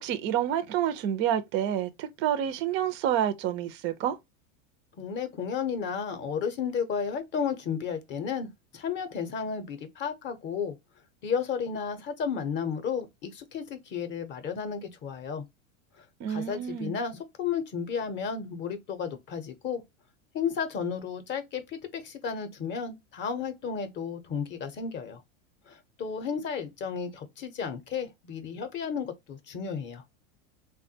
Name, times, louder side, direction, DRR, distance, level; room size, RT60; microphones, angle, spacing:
voice 1, 0.0-4.2 16.2-16.9, right 10 dB, 30° right, 0.4 m, -28 dB
voice 2, 5.0-10.7 11.2-15.4 16.3-19.8 20.3-25.2 25.7-30.0, left 6 dB, 30° left, 0.6 m, -33 dB
3.5 x 2.2 x 2.6 m
supercardioid pair, 135°, 39 cm